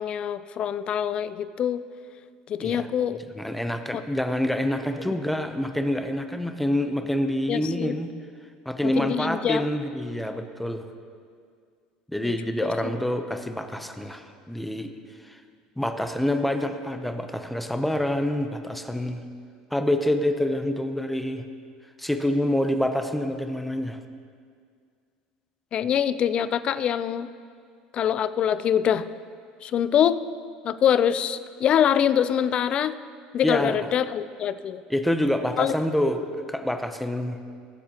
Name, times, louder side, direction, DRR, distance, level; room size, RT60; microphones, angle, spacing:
voice 1, 0.0-1.8 2.5-3.2 7.5-8.0 8.8-9.7 12.2-12.3 12.6-12.9 25.7-27.3 27.9-29.0 29.6-30.2 30.6-32.9 33.3-34.8 35.6-35.7, left 9 dB, 45° left, 13 dB, 0.5 m, -24 dB
voice 2, 3.3-8.1 8.7-10.8 12.1-14.9 15.2-15.4 15.8-19.2 19.7-21.5 22.0-24.0 33.4-33.7 34.9-37.4, left 1 dB, 5° left, 7 dB, 0.7 m, -27 dB
21.5 x 7.4 x 3.0 m, 2.1 s
supercardioid pair, 110°, 2 cm